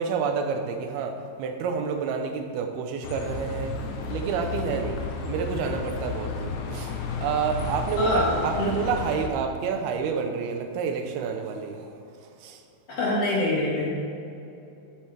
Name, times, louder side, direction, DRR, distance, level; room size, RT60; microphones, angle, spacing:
voice 1, 0.0-3.8 4.1-11.9 12.4-12.6, right 5 dB, 85° right, 5 dB, 2.7 m, -29 dB
Bus, 3.0-9.3, left 4 dB, 70° left, 2.0 m, -32 dB
voice 2, 8.0-8.8 12.9-13.9, left 1 dB, 50° left, -5 dB, 2.1 m, -25 dB
12.5 x 7.7 x 3.3 m, 2.7 s
omnidirectional pair, 4.4 m